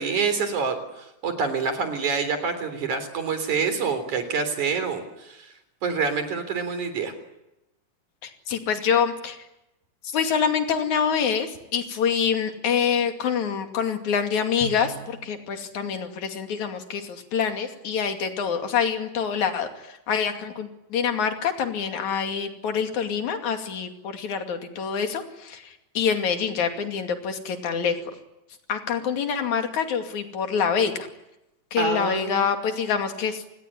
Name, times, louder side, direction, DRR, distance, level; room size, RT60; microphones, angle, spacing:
voice 1, 0.0-5.5 5.8-7.1 31.8-32.5, right 5 dB, 55° right, 10 dB, 4.9 m, -27 dB
voice 2, 8.2-9.4 10.0-28.0 28.7-31.1 31.7-33.4, left 7 dB, 55° left, 5 dB, 3.7 m, -26 dB
Drum, 14.6-16.3, right 1 dB, 90° left, 6.7 m, -41 dB
29.0 x 20.5 x 9.9 m, 0.91 s
omnidirectional pair, 4.3 m